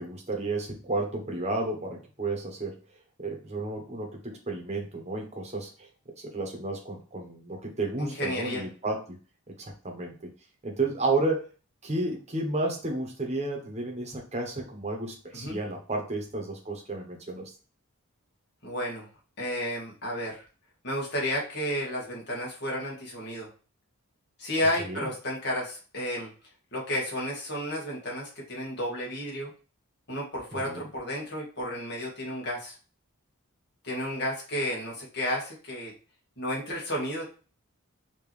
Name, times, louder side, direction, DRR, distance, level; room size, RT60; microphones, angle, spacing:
voice 1, 0.0-2.8 3.2-5.9 6.2-9.0 9.6-10.1 10.6-11.5 11.8-17.5 24.6-25.1 30.5-30.8, right 2 dB, 30° right, 1 dB, 1.1 m, -32 dB
voice 2, 8.0-8.7 15.3-15.6 18.6-19.1 19.4-20.4 20.8-23.5 24.4-26.3 26.7-29.5 30.1-32.8 33.8-35.9 36.4-37.2, equal, 50° left, -3 dB, 1.8 m, -32 dB
5.1 x 3.1 x 3.3 m, 0.36 s
head